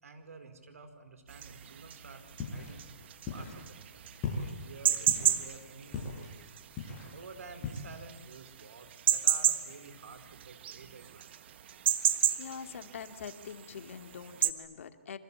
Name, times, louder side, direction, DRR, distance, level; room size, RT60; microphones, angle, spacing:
voice 1, 0.0-2.9 3.3-4.1 4.4-6.5 7.0-11.3, right 4 dB, 80° right, 9 dB, 4.6 m, -50 dB
sound 1, 1.3-14.5, right 10 dB, 50° right, 1.5 m, -32 dB
sound 2, 2.3-7.7, left 4 dB, 25° left, 7.5 m, -41 dB
voice 2, 12.4-15.2, left 7 dB, 65° left, 9 dB, 2.2 m, -44 dB
26.5 x 25.5 x 8.6 m, 1.1 s
hypercardioid pair, 155°, 8 cm